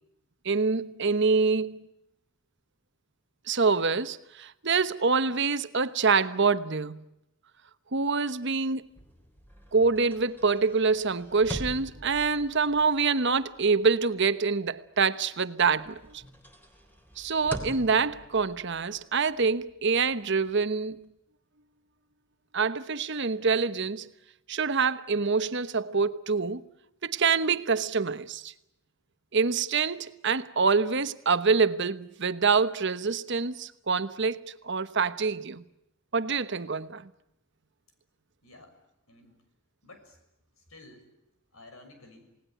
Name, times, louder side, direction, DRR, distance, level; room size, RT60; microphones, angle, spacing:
voice 1, 0.4-1.9 3.5-7.0 7.9-8.8 9.7-16.2 17.2-21.1 22.5-24.1 24.5-26.6 27.0-28.5 29.3-35.6 36.1-37.1, right 4 dB, 60° right, 1.1 m, -26 dB
sound 1, 8.9-15.3 15.7-21.1, equal, 10° left, 3.5 m, -45 dB
voice 2, 38.4-38.8 39.1-39.4 39.8-40.2 40.6-41.1 41.5-42.3, left 2 dB, 85° left, 6.6 m, -52 dB
28.0 x 19.0 x 9.2 m
head